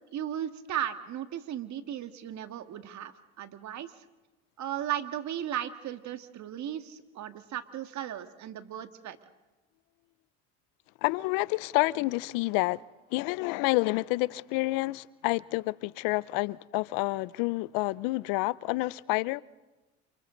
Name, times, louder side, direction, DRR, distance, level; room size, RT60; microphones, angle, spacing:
voice 1, 0.1-3.1 3.4-3.9 4.6-9.2, right 10 dB, 55° right, 2.0 m, -36 dB
voice 2, 11.0-12.8 13.1-19.4, left 22 dB, 75° left, 0.7 m, -29 dB
29.0 x 28.5 x 4.0 m
supercardioid pair, 80°, 34 cm